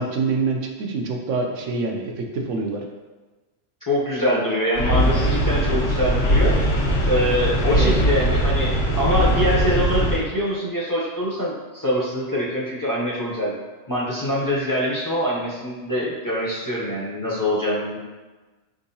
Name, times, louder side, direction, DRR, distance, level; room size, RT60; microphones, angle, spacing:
voice 1, 0.0-2.8 7.7-7.9, right 4 dB, 90° right, 2 dB, 1.0 m, -25 dB
voice 2, 3.9-6.5 7.0-13.6 13.9-18.0, equal, 20° left, -6 dB, 0.6 m, -24 dB
sound 1, 4.7-10.2, equal, 65° left, 1.2 m, -20 dB
4.5 x 3.6 x 2.7 m, 1.2 s
omnidirectional pair, 1.3 m